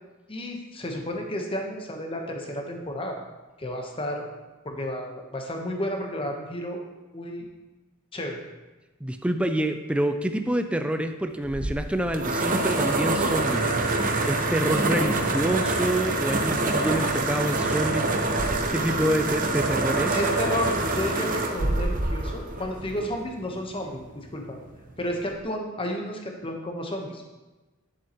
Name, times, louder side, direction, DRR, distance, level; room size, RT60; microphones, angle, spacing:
voice 1, 0.3-3.2 3.6-4.2 4.6-6.8 7.1-7.5 8.1-8.4 20.1-24.6 25.0-27.2, left 1 dB, 25° left, 2 dB, 1.0 m, -32 dB
voice 2, 9.0-20.2, right 1 dB, 5° right, 7 dB, 0.3 m, -27 dB
sound 1, 11.4-23.3, right 2 dB, 40° right, 0.8 m, -26 dB
10.5 x 7.3 x 3.0 m, 1.2 s
head